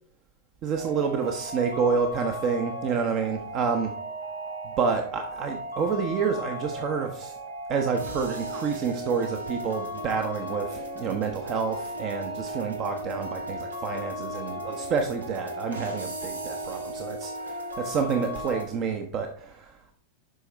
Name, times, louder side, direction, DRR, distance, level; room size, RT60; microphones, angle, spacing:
voice 1, 0.6-3.9 4.6-7.4 7.7-19.9, right 5 dB, 35° right, 5 dB, 0.8 m, -29 dB
sound 1, 0.7-18.7, right 1 dB, 75° right, 1.4 m, -36 dB
11.0 x 5.2 x 3.3 m, 0.64 s
figure-of-eight pair, 90°, 0 cm